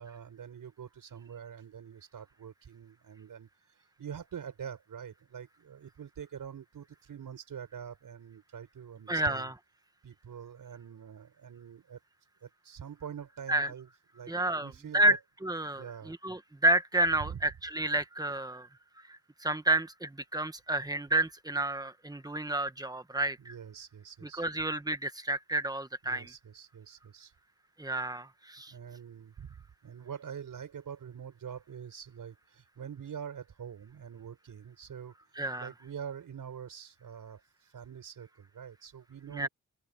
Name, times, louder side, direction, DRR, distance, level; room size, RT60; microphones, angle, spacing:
voice 1, 0.0-9.5 10.0-12.0 12.4-15.2 15.7-16.1 17.2-17.4 23.4-24.5 26.0-27.3 28.7-35.1 35.6-39.5, right 8 dB, 90° right, 6.0 m, -45 dB
voice 2, 9.1-9.5 13.5-13.7 14.3-18.7 19.1-23.5 24.4-26.3 27.8-28.7 35.4-35.7 39.3-39.5, right 1 dB, 10° right, 1.5 m, -30 dB
open air
wide cardioid pair, 115°, 32 cm